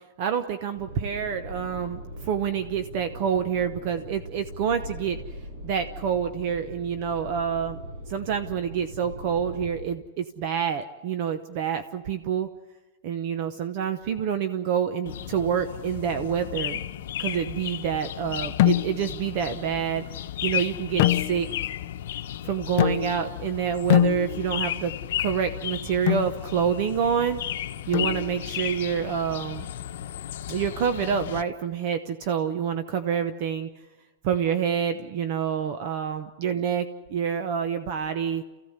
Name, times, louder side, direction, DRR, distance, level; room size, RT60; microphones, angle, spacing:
voice 1, 0.2-5.2 5.6-12.5 13.0-16.8 17.2-20.0 20.4-21.5 22.4-24.9 25.2-27.4 27.9-29.7 30.5-33.7 34.2-38.4, right 8 dB, 35° right, 9 dB, 0.9 m, -27 dB
sound 1, 0.7-9.8, equal, 65° right, 6.9 m, -40 dB
sound 2, 15.1-31.4, left 11 dB, 65° left, 1.0 m, -34 dB
sound 3, 18.6-19.2 21.0-21.7 22.8-23.4 23.9-24.7 26.1-26.4 27.9-28.5, left 15 dB, 45° left, 0.6 m, -24 dB
29.0 x 15.5 x 8.1 m, 1.2 s
supercardioid pair, 175°, 0 cm